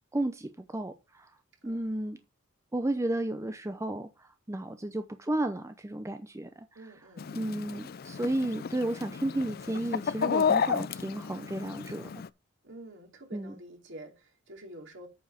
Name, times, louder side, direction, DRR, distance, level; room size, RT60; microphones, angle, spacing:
voice 1, 0.1-1.3 1.6-2.2 2.7-6.7 7.3-12.1 13.3-13.5, right 1 dB, 15° right, 0.6 m, -33 dB
voice 2, 1.6-2.2 6.7-7.3 12.6-15.1, right 1 dB, 65° right, 2.8 m, -48 dB
Chicken rooster, 7.2-12.3, left 6 dB, 50° left, 0.4 m, -32 dB
8.6 x 5.4 x 5.7 m
head